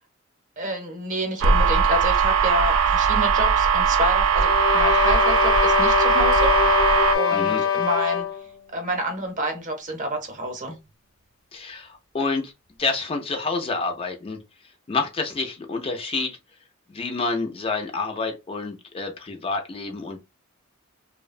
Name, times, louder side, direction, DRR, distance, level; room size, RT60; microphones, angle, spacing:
voice 1, 0.6-6.5 7.1-8.2 8.7-10.8, equal, 40° right, 0.7 m, -28 dB
sound 1, 1.4-7.2, right 6 dB, 75° right, 0.3 m, -20 dB
sound 2, 4.3-8.5, left 7 dB, 75° left, 0.6 m, -22 dB
voice 2, 7.3-7.6 11.5-12.5 12.8-14.4 14.9-16.4 16.9-20.2, left 3 dB, 25° left, 0.3 m, -28 dB
2.6 x 2.1 x 2.4 m
head